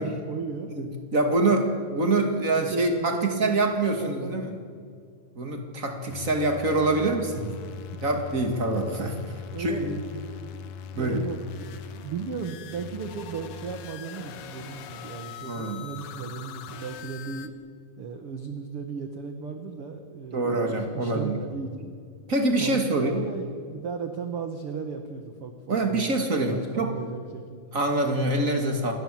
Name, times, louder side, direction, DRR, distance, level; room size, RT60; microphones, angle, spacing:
voice 1, 0.0-0.7 2.6-3.7 4.0-4.5 6.6-7.7 9.5-17.5 18.0-21.9 22.6-26.2 26.5-27.7, right 5 dB, 60° right, 5 dB, 1.4 m, -36 dB
voice 2, 0.8-4.5 5.3-7.5 8.0-9.2 9.6-10.0 10.9-11.2 15.5-15.8 20.3-21.4 22.3-23.2 25.7-26.9 27.7-28.9, right 2 dB, 35° right, 4 dB, 1.3 m, -25 dB
sound 1, 6.1-17.5, left 7 dB, 70° left, 1.7 m, -41 dB
28.0 x 21.0 x 7.7 m, 2.2 s
omnidirectional pair, 5.0 m